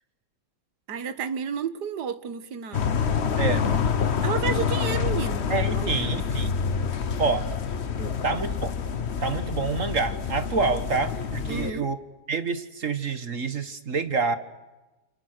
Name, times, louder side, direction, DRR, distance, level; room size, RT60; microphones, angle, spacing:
voice 1, 0.9-2.9 4.2-6.2 8.0-8.2 11.5-11.9, right 7 dB, 70° right, 1.8 m, -32 dB
sound 1, 2.7-11.7, left 7 dB, 45° left, 1.2 m, -27 dB
voice 2, 3.4-3.7 5.5-6.5 7.2-7.5 8.2-8.7 9.2-12.0 12.3-14.4, right 4 dB, 50° right, 1.6 m, -27 dB
29.5 x 28.5 x 6.6 m
omnidirectional pair, 1.9 m